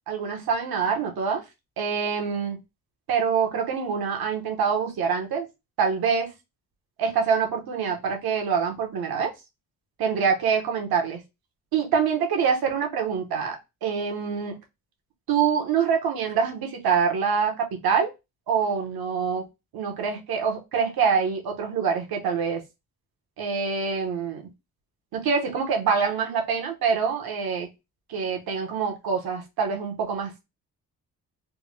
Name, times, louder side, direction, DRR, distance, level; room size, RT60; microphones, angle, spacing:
voice 1, 0.1-1.4 1.8-2.6 3.1-5.5 5.8-6.3 7.0-9.3 10.0-11.2 11.7-14.5 15.3-18.1 18.5-19.4 19.7-22.6 23.4-24.4 25.1-27.7 28.1-30.4, right 6 dB, 75° right, 1.0 m, -25 dB
3.5 x 2.2 x 3.2 m
cardioid pair, 85°, 37 cm